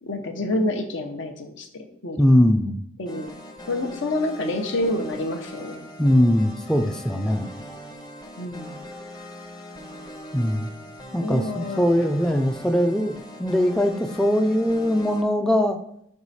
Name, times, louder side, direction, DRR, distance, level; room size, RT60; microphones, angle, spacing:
voice 1, 0.0-2.2 3.0-3.3 3.7-5.8 8.4-8.8 11.2-11.9, left 1 dB, 80° left, 5 dB, 0.9 m, -28 dB
voice 2, 2.2-2.8 6.0-7.5 10.3-10.7 11.1-15.8, equal, 5° left, 6 dB, 0.3 m, -21 dB
sound 1, 3.1-15.2, left 1 dB, 20° left, 0.7 m, -41 dB
5.5 x 4.7 x 4.1 m, 0.71 s
head